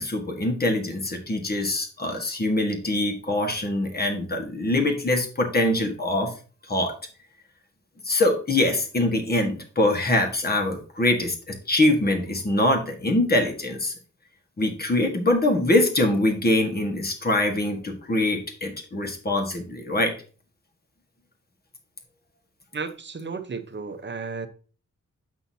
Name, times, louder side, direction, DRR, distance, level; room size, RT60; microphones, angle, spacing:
voice 1, 0.0-6.3 6.7-6.9 8.0-13.9 14.6-20.1, left 1 dB, 30° left, 1.5 m, -23 dB
voice 2, 22.7-24.5, right 4 dB, 40° right, 0.8 m, -33 dB
8.2 x 5.8 x 2.7 m
wide cardioid pair, 105°, 29 cm